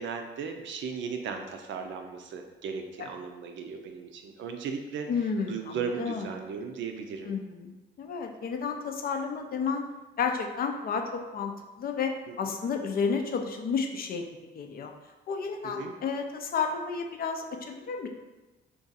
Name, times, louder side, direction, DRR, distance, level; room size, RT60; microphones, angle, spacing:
voice 1, 0.0-7.3 12.3-12.5 15.6-15.9, right 6 dB, 70° right, 4 dB, 0.5 m, -37 dB
voice 2, 5.1-6.3 7.3-7.7 8.0-9.8 10.2-11.5 11.8-14.2 14.5-14.9 15.3-18.1, left 5 dB, 50° left, 4 dB, 0.4 m, -31 dB
2.6 x 2.4 x 3.9 m, 1.1 s
cardioid pair, 90°, 20 cm